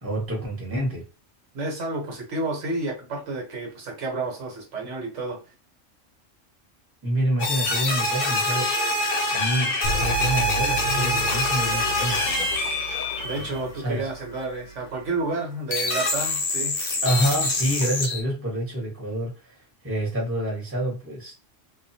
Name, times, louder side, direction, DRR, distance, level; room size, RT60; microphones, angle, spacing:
voice 1, 0.0-1.0 7.0-8.7 9.3-12.3 13.8-14.1 17.0-21.3, right 1 dB, 10° right, 1.0 m, -27 dB
voice 2, 1.5-5.4 13.2-16.8, right 3 dB, 70° right, 1.2 m, -30 dB
sound 1, 7.4-13.7 15.7-18.2, left 2 dB, 50° left, 0.8 m, -25 dB
sound 2, 9.8-15.3, right 2 dB, 90° left, 1.0 m, -34 dB
2.4 x 2.3 x 2.6 m
omnidirectional pair, 1.3 m